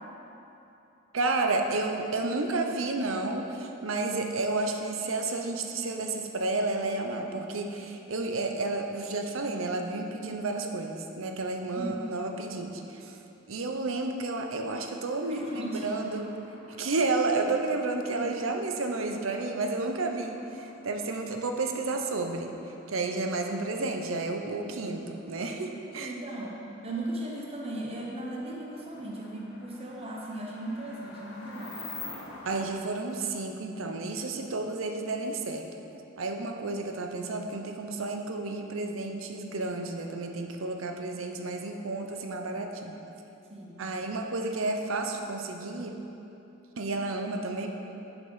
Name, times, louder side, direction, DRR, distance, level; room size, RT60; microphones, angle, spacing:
voice 1, 1.1-13.2 13.5-16.3 16.8-26.2 32.4-35.7 36.2-43.0 43.8-46.0 46.8-47.7, right 3 dB, 80° right, 4 dB, 0.7 m, -31 dB
sound 1, 15.2-32.7, left 3 dB, 55° left, 1.3 m, -50 dB
voice 2, 15.3-15.9 18.1-18.2 25.9-26.6 26.8-31.7 43.5-43.8, right 1 dB, 30° right, -2 dB, 1.0 m, -37 dB
7.4 x 6.0 x 5.5 m, 3.0 s
head